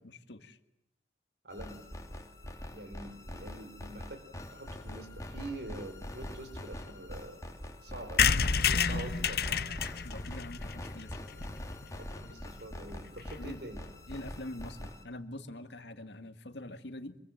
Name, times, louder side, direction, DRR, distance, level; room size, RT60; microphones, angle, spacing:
voice 1, 0.0-0.6 8.9-9.0 10.0-11.1 13.3-13.6 14.1-17.2, left 1 dB, 75° left, 9 dB, 1.8 m, -44 dB
voice 2, 1.4-1.9 2.7-7.4 7.8-8.4 8.8-9.7 11.9-13.8, right 1 dB, 60° right, 9 dB, 4.4 m, -45 dB
sound 1, 1.5-15.0, left 1 dB, 20° left, 2.7 m, -44 dB
sound 2, 8.2-11.9 12.3-12.4 12.6-12.7 12.9-13.0 13.2-13.4, left 6 dB, 55° left, 1.0 m, -29 dB
26.0 x 23.5 x 7.8 m, 0.83 s
head